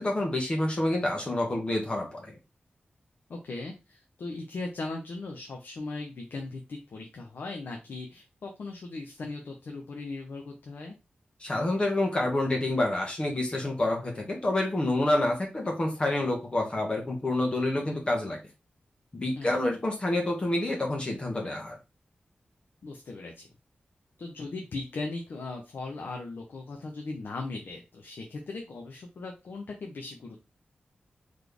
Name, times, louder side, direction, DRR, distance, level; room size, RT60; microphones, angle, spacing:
voice 1, 0.0-2.4 11.4-18.4 19.1-21.8, left 1 dB, 30° left, 1 dB, 1.3 m, -28 dB
voice 2, 3.3-11.0 19.4-19.5 22.8-23.5 24.2-30.4, left 3 dB, 80° left, 2 dB, 0.8 m, -38 dB
4.1 x 3.2 x 3.3 m, 0.26 s
wide cardioid pair, 120°, 3 cm